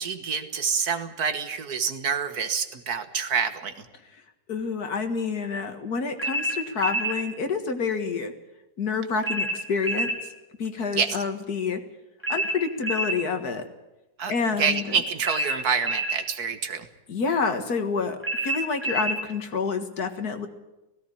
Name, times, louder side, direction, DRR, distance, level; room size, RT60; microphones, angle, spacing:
voice 1, 0.0-3.9 10.9-11.2 14.2-14.3 14.6-16.9, right 6 dB, 70° right, 9 dB, 1.8 m, -27 dB
voice 2, 4.5-8.3 8.8-10.1 10.6-11.8 12.3-13.6 14.3-15.0 17.1-18.2 18.4-20.5, left 5 dB, 70° left, 7 dB, 2.2 m, -28 dB
sound 1, 6.2-7.2 9.2-10.2 12.2-13.2 15.2-16.2 18.2-19.2, right 1 dB, 5° right, 3.7 m, -27 dB
17.0 x 16.5 x 9.9 m, 1.0 s
omnidirectional pair, 1.7 m